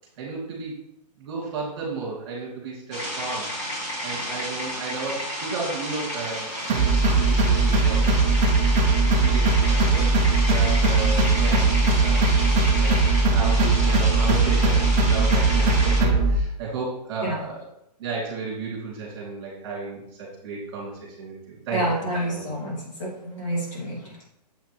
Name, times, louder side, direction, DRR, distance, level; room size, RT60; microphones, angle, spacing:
voice 1, 0.2-0.8 1.2-8.4 8.9-12.4 12.8-13.0 13.3-17.6 18.0-22.4, right 4 dB, 35° right, -3 dB, 2.7 m, -33 dB
sound 1, 2.9-16.0, equal, 25° left, 2.9 m, -31 dB
sound 2, 6.7-16.4, right 3 dB, 10° right, 0.4 m, -20 dB
voice 2, 21.7-24.3, right 1 dB, 45° left, -4 dB, 2.5 m, -29 dB
7.6 x 5.7 x 3.2 m, 0.78 s
hypercardioid pair, 170°, 21 cm